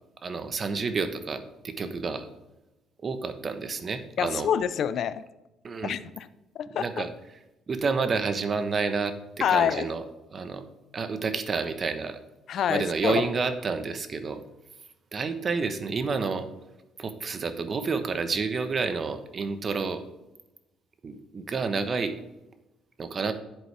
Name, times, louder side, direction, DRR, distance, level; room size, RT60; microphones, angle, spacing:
voice 1, 0.2-2.3 3.0-4.5 5.6-5.9 6.7-7.1 7.7-10.0 10.3-10.6 10.9-12.2 12.7-14.4 15.1-16.5 17.0-20.0 21.0-22.2 23.0-23.3, right 4 dB, 45° right, 9 dB, 1.2 m, -29 dB
voice 2, 4.2-5.2 5.8-6.3 6.6-7.0 9.4-9.9 12.5-13.2, left 9 dB, 65° left, 14 dB, 0.6 m, -26 dB
11.0 x 7.9 x 3.5 m, 0.98 s
supercardioid pair, 75°, 0 cm